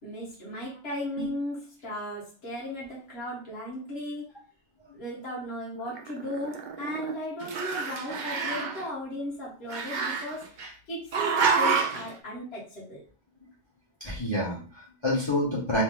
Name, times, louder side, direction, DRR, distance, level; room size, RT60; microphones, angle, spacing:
voice 1, 0.0-4.3 4.9-10.6 10.9-13.0, equal, 65° left, -6 dB, 1.5 m, -36 dB
Growling, 5.9-7.1 7.4-8.8 9.7-10.7 11.1-12.1, right 5 dB, 55° right, 0.6 m, -28 dB
voice 2, 14.0-15.8, left 1 dB, 25° left, -5 dB, 0.9 m, -28 dB
3.0 x 2.6 x 3.6 m, 0.38 s
omnidirectional pair, 1.2 m